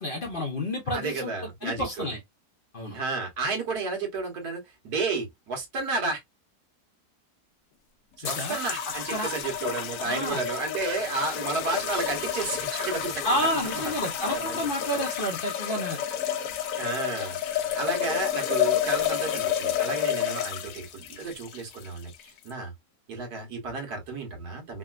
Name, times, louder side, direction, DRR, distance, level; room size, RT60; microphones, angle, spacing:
voice 1, 0.0-2.2 2.7-3.0 8.2-8.6 9.1-9.3 10.0-10.4 13.2-16.0, equal, 45° left, 0.7 m, -30 dB
voice 2, 0.9-2.1 2.9-6.2 8.2-13.2 14.0-14.7 14.9-15.0 16.8-22.7 23.1-24.8, right 3 dB, 80° right, 1.7 m, -32 dB
sound 1, 8.2-22.5, left 9 dB, 75° left, 1.1 m, -30 dB
3.6 x 2.2 x 2.4 m
omnidirectional pair, 1.6 m